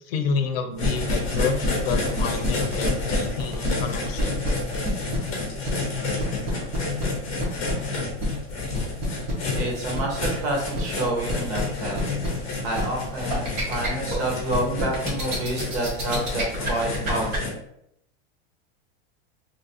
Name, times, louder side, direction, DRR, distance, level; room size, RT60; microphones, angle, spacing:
voice 1, 0.1-1.6 1.8-4.4, left 5 dB, 70° left, 6 dB, 0.6 m, -29 dB
sound 1, 0.8-17.5, left 3 dB, 25° left, 0.9 m, -31 dB
sound 2, 0.8-17.4, equal, 50° right, 1.3 m, -29 dB
voice 2, 9.5-17.3, right 1 dB, 75° right, -1 dB, 1.3 m, -28 dB
3.0 x 2.6 x 2.7 m, 0.75 s
supercardioid pair, 180°, 31 cm